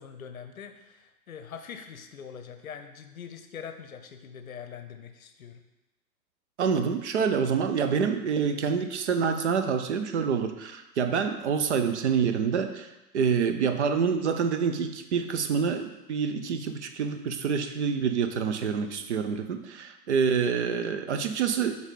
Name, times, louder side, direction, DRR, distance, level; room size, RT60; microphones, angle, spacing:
voice 1, 0.0-5.6, left 7 dB, 55° left, 8 dB, 0.8 m, -43 dB
voice 2, 6.6-12.9 13.1-21.8, right 6 dB, 45° right, 7 dB, 0.7 m, -27 dB
8.8 x 3.6 x 4.0 m, 1.0 s
figure-of-eight pair, 110°, 50 cm